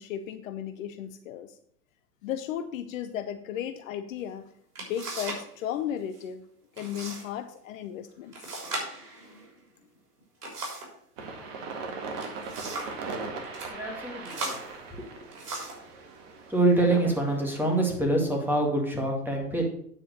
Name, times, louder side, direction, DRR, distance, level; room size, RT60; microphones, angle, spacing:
voice 1, 0.0-1.6 2.2-4.5 4.9-6.4 6.8-8.5, left 10 dB, 55° left, 9 dB, 0.8 m, -35 dB
sound 1, 4.2-4.3 4.7-5.5 5.8-6.2 6.7-7.3 7.6-7.7 8.3-11.0 12.0-13.0 13.4-13.7 14.2-15.9 16.6-16.8 17.4-17.9, right 2 dB, 70° right, 3.6 m, -38 dB
sound 2, 11.2-18.0, right 4 dB, 45° right, 1.8 m, -39 dB
voice 2, 13.7-14.6 14.9-15.1 16.5-19.7, right 2 dB, 5° right, 0 dB, 2.1 m, -25 dB
9.0 x 4.6 x 6.5 m, 0.64 s
hypercardioid pair, 110°, 47 cm